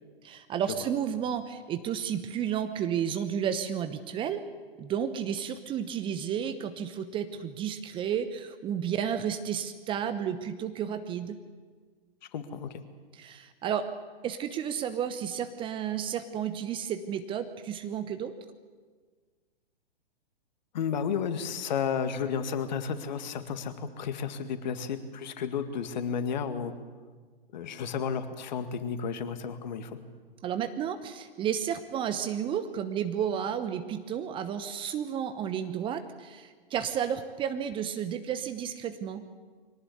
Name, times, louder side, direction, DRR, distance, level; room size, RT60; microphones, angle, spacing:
voice 1, 0.2-4.4 4.8-11.4 13.1-13.9 14.2-18.3 30.4-39.3, right 8 dB, 15° right, 10 dB, 1.0 m, -32 dB
voice 2, 12.3-12.8 20.7-26.7 27.5-30.0, left 7 dB, 50° left, 9 dB, 2.1 m, -32 dB
23.0 x 18.5 x 8.5 m, 1.5 s
figure-of-eight pair, 120°, 29 cm